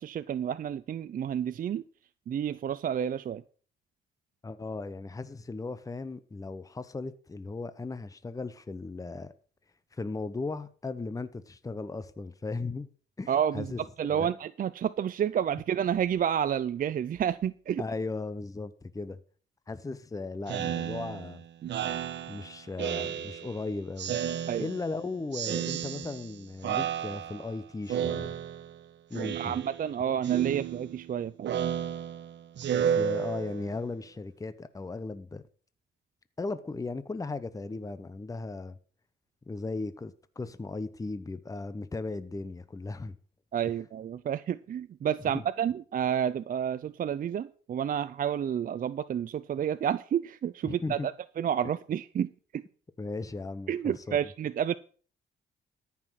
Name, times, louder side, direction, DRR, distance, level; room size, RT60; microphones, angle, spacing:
voice 1, 0.0-1.8 2.3-3.4 13.3-17.8 24.5-24.7 29.3-31.5 43.5-51.1 51.4-52.6 53.7-54.7, right 9 dB, 45° right, 0.5 m, -30 dB
voice 2, 4.4-9.3 9.9-12.9 13.2-13.8 14.1-14.3 17.8-19.2 19.7-21.4 22.3-24.2 24.6-28.3 29.1-29.6 30.0-30.1 32.7-35.4 36.4-38.8 39.5-43.2 50.6-51.1 53.0-54.2, left 3 dB, 15° left, 0.8 m, -37 dB
Speech synthesizer, 20.5-23.6 24.0-25.0 25.3-26.3 26.6-27.5 27.9-28.8 29.1-29.9 30.2-33.8, right 9 dB, 65° right, 1.1 m, -32 dB
13.5 x 5.9 x 6.3 m
cardioid pair, 90°, 20 cm